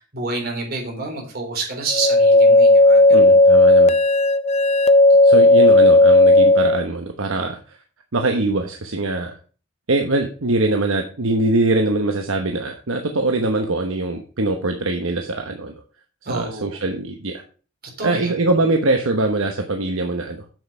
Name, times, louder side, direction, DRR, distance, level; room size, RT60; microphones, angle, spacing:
voice 1, 0.0-3.3 16.3-16.8 18.0-18.3, right 3 dB, 50° right, 1 dB, 4.0 m, -28 dB
sound 1, 1.9-6.8, left 2 dB, 30° left, 0.6 m, -13 dB
voice 2, 3.1-4.0 5.2-7.8 8.1-9.3 9.9-15.7 16.2-17.4 18.0-20.4, right 2 dB, 75° right, 4 dB, 1.1 m, -22 dB
7.8 x 7.4 x 5.5 m, 0.39 s
head